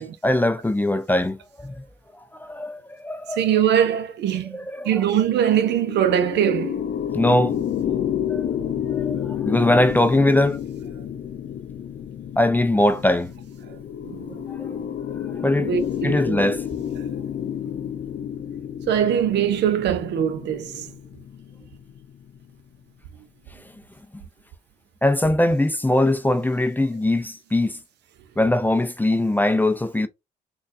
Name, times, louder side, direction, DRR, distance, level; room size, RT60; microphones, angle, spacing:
voice 1, 0.0-1.8 2.3-3.4 4.5-5.0 7.1-7.6 8.3-10.6 12.4-13.3 14.5-14.8 15.2-15.7 16.0-16.6 24.1-24.2 25.0-27.8 28.4-30.1, left 1 dB, 10° left, 0.4 m, -21 dB
voice 2, 3.3-4.6 4.8-6.8 7.9-8.0 13.7-13.8 14.0-14.4 15.6-16.4 18.9-20.9, right 9 dB, 65° right, 0.6 m, -22 dB
sound 1, 5.0-22.4, left 9 dB, 55° left, 0.5 m, -30 dB
3.9 x 2.3 x 2.5 m
hypercardioid pair, 50°, 19 cm